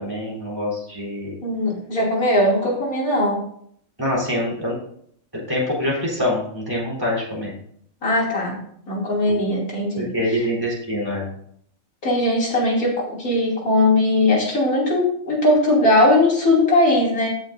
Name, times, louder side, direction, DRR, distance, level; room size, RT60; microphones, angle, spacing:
voice 1, 0.0-1.3 4.0-4.8 5.5-7.5 10.0-11.3, left 1 dB, 15° right, -6 dB, 3.8 m, -25 dB
voice 2, 1.4-3.4 8.0-8.6 8.9-10.1 10.4-10.5 12.0-17.3, left 1 dB, 90° left, -4 dB, 3.3 m, -19 dB
15.0 x 6.3 x 2.6 m, 0.66 s
omnidirectional pair, 1.5 m